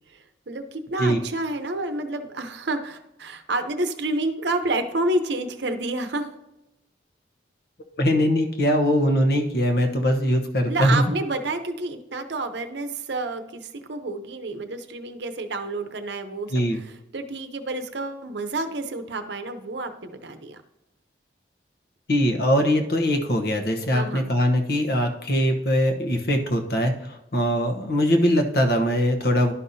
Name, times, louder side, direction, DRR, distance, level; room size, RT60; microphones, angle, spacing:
voice 1, 0.1-6.3 10.7-20.6 23.9-24.3, right 2 dB, 70° right, 7 dB, 0.8 m, -29 dB
voice 2, 8.0-11.0 16.5-16.8 22.1-26.9 27.3-29.5, equal, 60° left, 4 dB, 1.0 m, -21 dB
11.5 x 5.6 x 2.7 m, 0.92 s
head